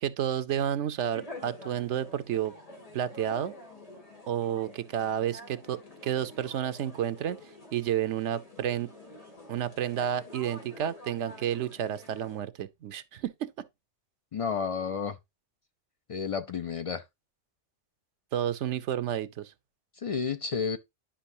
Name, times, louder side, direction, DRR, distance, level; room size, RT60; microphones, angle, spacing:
voice 1, 0.0-2.5 2.9-3.5 4.3-7.4 7.7-8.9 9.5-13.6 18.3-19.5, right 10 dB, 85° right, 1.0 m, -31 dB
sound 1, 1.1-12.4, left 1 dB, 35° left, 2.2 m, -48 dB
voice 2, 14.3-15.2 16.1-17.0 20.0-20.8, left 6 dB, 60° left, 0.3 m, -31 dB
10.0 x 5.3 x 2.7 m
omnidirectional pair, 1.2 m